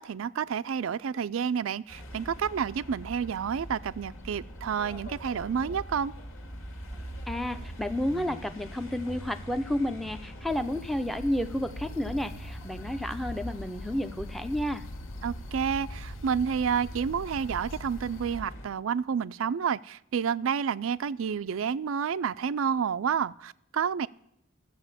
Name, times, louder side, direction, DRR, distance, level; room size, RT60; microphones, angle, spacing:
voice 1, 0.0-6.1 15.2-24.1, right 7 dB, 75° right, 0.4 m, -30 dB
sound 1, 1.9-18.7, equal, 80° left, 2.1 m, -42 dB
voice 2, 7.3-14.8, left 1 dB, ahead, 0.5 m, -31 dB
sound 2, 10.5-18.4, left 4 dB, 65° left, 0.4 m, -47 dB
13.5 x 7.7 x 7.3 m
head